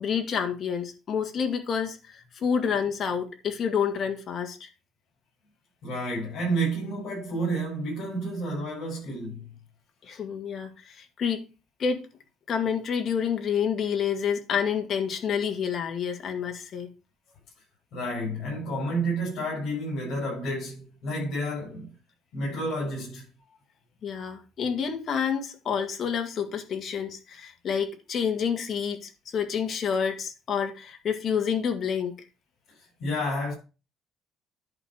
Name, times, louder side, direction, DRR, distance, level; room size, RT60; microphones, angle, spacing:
voice 1, 0.0-4.7 10.0-11.4 11.8-12.1 12.5-16.9 24.0-32.1, left 7 dB, 40° left, 1.9 m, -28 dB
voice 2, 5.8-9.4 17.9-21.9 22.3-23.2 33.0-33.5, right 1 dB, 65° left, 6.9 m, -30 dB
11.0 x 4.5 x 6.2 m
cardioid pair, 145°, 0 cm